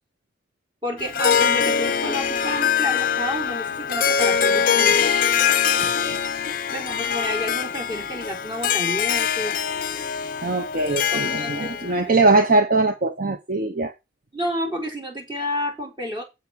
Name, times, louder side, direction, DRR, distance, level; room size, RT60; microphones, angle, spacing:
voice 1, 0.8-5.1 6.7-9.6 11.1-12.1 14.3-16.2, equal, 25° right, 0 dB, 4.5 m, -30 dB
Harp, 1.0-11.9, left 7 dB, 45° left, 0.7 m, -23 dB
voice 2, 5.8-6.2 10.4-13.9, right 3 dB, 45° right, 8 dB, 0.8 m, -21 dB
7.9 x 7.0 x 6.1 m, 0.24 s
head